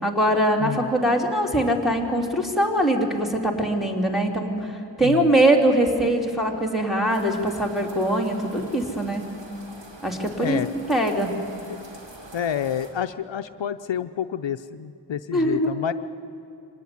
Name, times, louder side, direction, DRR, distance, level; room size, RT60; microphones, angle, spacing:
voice 1, 0.0-9.3 10.0-10.6 10.9-11.3 15.3-15.7, right 1 dB, ahead, -1 dB, 3.1 m, -22 dB
sound 1, 7.1-12.9, right 1 dB, 70° right, 3.7 m, -45 dB
voice 2, 12.3-15.9, left 8 dB, 70° left, 10 dB, 0.7 m, -29 dB
25.0 x 19.0 x 9.8 m, 2.8 s
wide cardioid pair, 85°, 46 cm